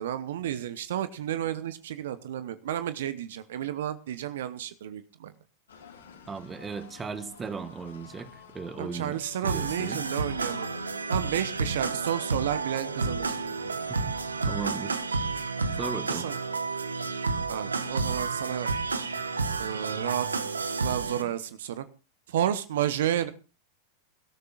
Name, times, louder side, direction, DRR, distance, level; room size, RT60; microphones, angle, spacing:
voice 1, 0.0-5.3 8.8-10.7 11.1-13.4 16.1-16.4 17.5-18.7 19.6-20.5 20.8-21.8 22.3-23.3, right 11 dB, 65° right, 13 dB, 0.9 m, -31 dB
sound 1, 5.7-14.4, left 7 dB, 75° left, 3.5 m, -50 dB
voice 2, 6.3-10.0 13.9-14.2 14.5-15.4 15.8-16.3, right 5 dB, 20° right, 11 dB, 1.5 m, -37 dB
sound 2, 9.4-21.2, right 4 dB, 85° right, 1.2 m, -30 dB
22.5 x 13.5 x 2.4 m, 0.32 s
figure-of-eight pair, 95°, 0 cm